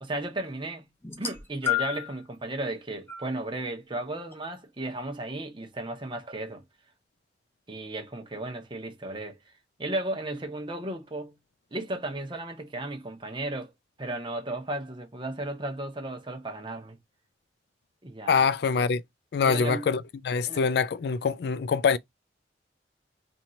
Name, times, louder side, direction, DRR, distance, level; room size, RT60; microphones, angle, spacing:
voice 1, 0.0-0.9 1.2-6.6 7.7-9.4 9.8-11.4 11.7-13.7 14.0-17.0 18.0-18.5 19.4-19.9 20.5-20.6, right 2 dB, 25° right, 0.8 m, -34 dB
sound 1, 1.0-2.2 3.1-3.3 4.3-4.4, left 11 dB, 15° left, 0.6 m, -30 dB
voice 2, 18.3-19.0 19.3-22.0, left 5 dB, 60° left, 0.3 m, -24 dB
2.9 x 2.6 x 4.2 m
head